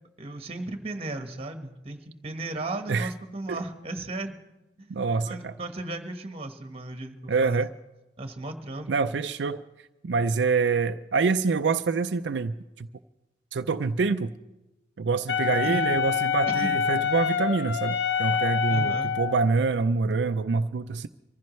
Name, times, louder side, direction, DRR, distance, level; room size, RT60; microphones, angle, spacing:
voice 1, 0.2-4.3 4.8-4.9 5.3-7.6 8.2-8.9 15.6-15.9 16.5-16.7 18.7-19.1, right 2 dB, 35° right, 6 dB, 1.3 m, -35 dB
voice 2, 4.9-5.5 7.3-7.7 8.9-9.6 10.0-12.9 13.5-14.3 15.0-21.1, right 4 dB, 85° right, 8 dB, 0.5 m, -26 dB
Wind instrument woodwind instrument, 15.3-19.5, left 7 dB, 85° left, 0.6 m, -26 dB
24.5 x 15.0 x 3.2 m, 1.0 s
head